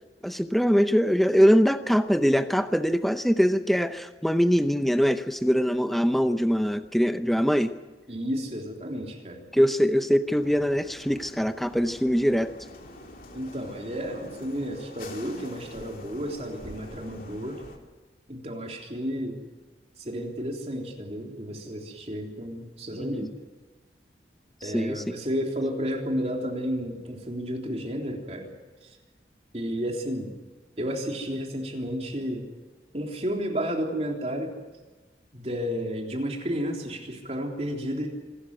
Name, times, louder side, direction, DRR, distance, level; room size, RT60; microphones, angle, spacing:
voice 1, 0.2-7.8 9.5-12.5 22.9-23.2 24.6-25.2, equal, ahead, 9 dB, 0.7 m, -23 dB
voice 2, 8.1-9.5 13.3-17.6 18.3-19.4 20.0-23.3 24.6-28.5 29.5-30.3 30.8-32.5 32.9-34.5 35.3-38.1, equal, 35° right, 1 dB, 3.6 m, -32 dB
sound 1, 10.3-17.8, left 1 dB, 50° left, 2.9 m, -46 dB
25.5 x 12.5 x 9.6 m, 1.3 s
head